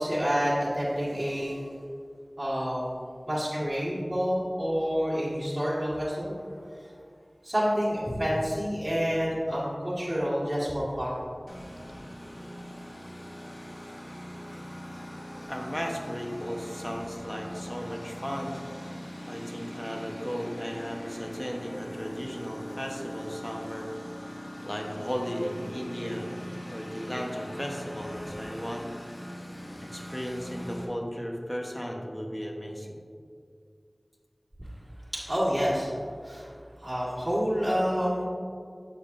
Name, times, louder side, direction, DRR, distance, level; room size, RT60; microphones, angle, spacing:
voice 1, 0.0-1.7 2.4-2.9 3.3-6.4 7.4-11.2 35.1-35.9 36.2-36.5 36.8-38.3, equal, 35° right, -8 dB, 1.9 m, -28 dB
Engine, 11.5-30.8, equal, 65° left, 1.3 m, -41 dB
voice 2, 15.5-18.6 19.3-23.9 24.6-26.4 26.7-28.9 29.8-33.0, equal, 15° left, 1 dB, 1.1 m, -35 dB
9.7 x 6.3 x 2.6 m, 2.2 s
wide cardioid pair, 45°, 0 cm